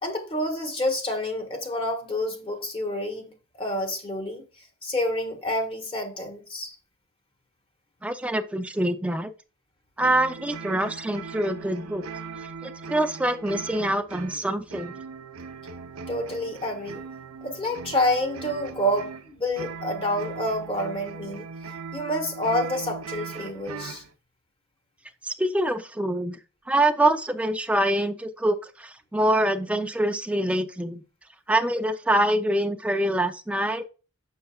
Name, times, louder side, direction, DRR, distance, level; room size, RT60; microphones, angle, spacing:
voice 1, 0.0-4.4 4.8-6.8 16.1-17.0 17.4-24.0, left 1 dB, 25° left, 1.4 m, -28 dB
voice 2, 8.0-9.3 10.0-12.0 12.6-15.0 25.2-26.4 26.7-31.0 31.5-33.8, right 1 dB, 5° right, 0.5 m, -25 dB
sound 1, 10.0-24.1, right 5 dB, 80° right, 0.7 m, -39 dB
6.7 x 6.5 x 2.3 m
head